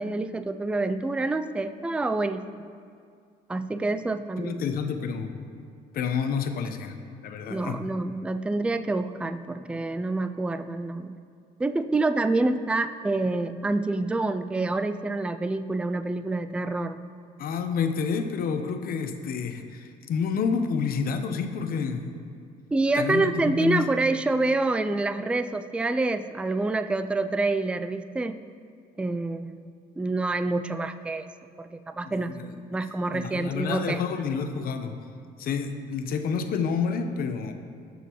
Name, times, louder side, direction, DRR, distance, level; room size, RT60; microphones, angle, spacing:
voice 1, 0.0-2.4 3.5-4.6 7.5-11.2 11.6-17.0 22.7-28.4 29.0-31.3 31.6-34.0, right 2 dB, 5° right, 10 dB, 0.3 m, -27 dB
voice 2, 4.4-5.4 5.9-7.8 17.4-22.1 23.0-23.9 32.0-32.6 33.1-35.0 35.4-37.5, left 6 dB, 60° left, 7 dB, 0.9 m, -29 dB
19.5 x 6.7 x 3.1 m, 2.2 s
cardioid pair, 110°, 17 cm